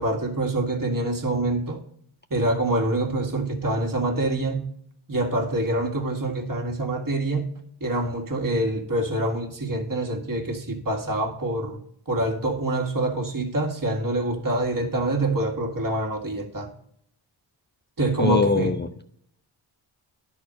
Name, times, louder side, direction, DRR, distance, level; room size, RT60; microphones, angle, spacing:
voice 1, 0.0-1.8 2.3-4.6 5.1-7.5 7.8-11.8 12.1-16.7 18.0-18.7, right 1 dB, 40° right, 1.8 m, -25 dB
voice 2, 18.2-19.0, left 4 dB, 20° left, 0.5 m, -23 dB
10.5 x 4.4 x 6.3 m
cardioid pair, 40°, 49 cm